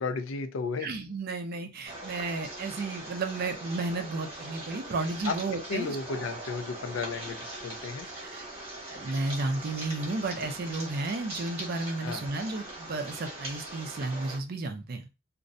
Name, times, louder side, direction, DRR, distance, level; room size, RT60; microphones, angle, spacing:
voice 1, 0.0-0.9 5.3-5.4 5.7-8.1 12.0-12.2, left 4 dB, 80° left, 8 dB, 0.4 m, -33 dB
voice 2, 0.8-6.0 8.2-8.4 8.9-15.0, right 3 dB, 50° right, 7 dB, 0.4 m, -33 dB
sound 1, 1.9-14.4, right 1 dB, 30° right, 1.0 m, -41 dB
2.5 x 2.1 x 2.5 m, 0.27 s
head